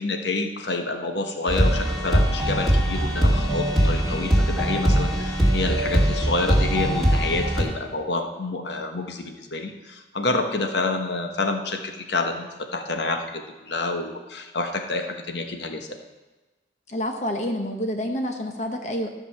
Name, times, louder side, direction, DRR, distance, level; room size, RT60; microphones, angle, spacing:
voice 1, 0.0-16.0, left 2 dB, 75° left, 5 dB, 1.2 m, -28 dB
sound 1, 1.5-7.6, equal, ahead, 2.4 m, -21 dB
voice 2, 16.9-19.1, equal, 40° left, 4 dB, 0.9 m, -28 dB
13.5 x 5.4 x 7.5 m, 1.2 s
head